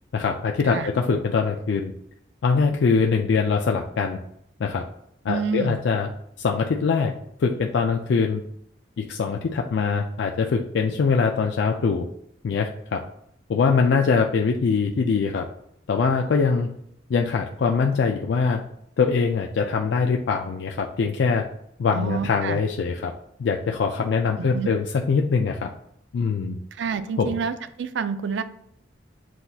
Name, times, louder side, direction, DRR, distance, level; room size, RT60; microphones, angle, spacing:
voice 1, 0.1-1.9 2.4-4.2 4.6-4.8 5.2-6.1 6.4-7.1 7.4-8.4 9.0-12.1 12.4-13.0 13.5-15.5 15.9-16.7 17.1-18.6 19.0-21.4 21.8-23.1 23.4-25.7 26.1-26.6 27.2-27.3, left 5 dB, 70° left, 2 dB, 0.3 m, -23 dB
voice 2, 5.3-5.8 21.9-22.6 24.4-24.7 26.7-28.4, right 5 dB, 75° right, 11 dB, 0.4 m, -28 dB
7.6 x 2.7 x 2.3 m, 0.73 s
head